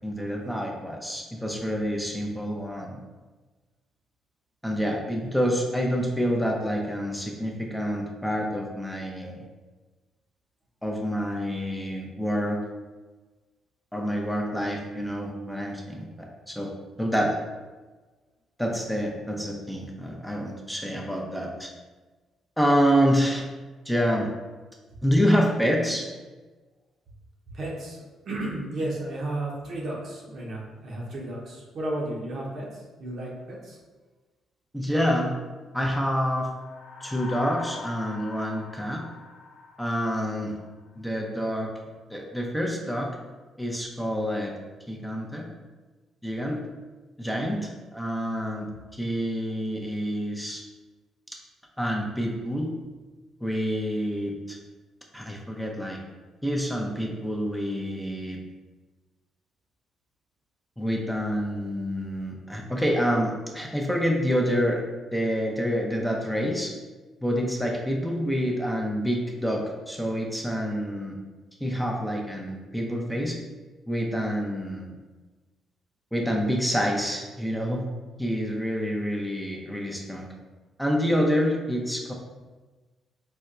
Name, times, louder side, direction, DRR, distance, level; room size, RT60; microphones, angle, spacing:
voice 1, 0.0-3.0 4.6-9.4 10.8-12.6 13.9-16.7 17.0-17.3 18.6-21.7 22.6-23.4 23.9-24.3 25.0-26.1 34.7-35.3 35.7-36.5 37.0-39.0 39.8-40.5 41.0-41.7 42.1-43.1 43.6-44.5 44.9-45.4 46.2-46.6 47.2-50.6 51.8-52.7 53.4-54.6 55.1-56.0 56.4-58.4 60.8-64.8 65.1-66.7 67.2-71.2 71.6-73.4 73.9-74.9 76.1-77.8 78.2-80.3 80.8-82.1, equal, 5° left, -1 dB, 0.6 m, -27 dB
voice 2, 27.5-33.8, right 1 dB, 60° right, -2 dB, 0.8 m, -33 dB
sound 1, 36.3-40.8, left 4 dB, 75° left, 0.4 m, -43 dB
4.2 x 2.1 x 2.4 m, 1.3 s
supercardioid pair, 60°, 0 cm